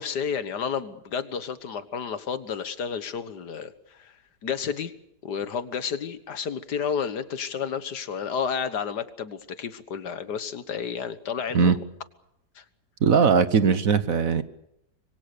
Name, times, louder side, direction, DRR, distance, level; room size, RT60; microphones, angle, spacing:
voice 1, 0.0-4.1 4.4-4.9 5.2-11.8 12.6-12.7, left 7 dB, 70° left, 12 dB, 1.9 m, -31 dB
voice 2, 13.0-14.4, right 6 dB, 55° right, 12 dB, 1.4 m, -20 dB
26.0 x 23.0 x 6.8 m, 0.80 s
omnidirectional pair, 1.8 m